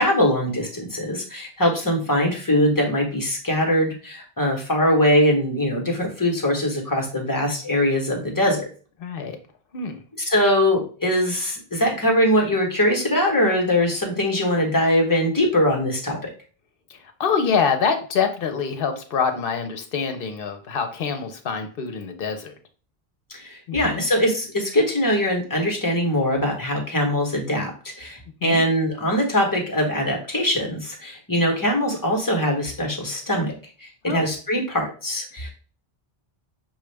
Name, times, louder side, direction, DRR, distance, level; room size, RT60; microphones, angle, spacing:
voice 1, 0.0-8.7 10.3-16.3 23.3-33.5 33.8-35.5, equal, 20° left, 1 dB, 1.0 m, -22 dB
voice 2, 9.0-9.4 9.7-10.0 17.2-22.5 23.7-24.0 28.4-28.6 34.1-34.3, left 6 dB, 65° left, 6 dB, 0.9 m, -25 dB
5.6 x 2.4 x 3.2 m, 0.38 s
omnidirectional pair, 1.0 m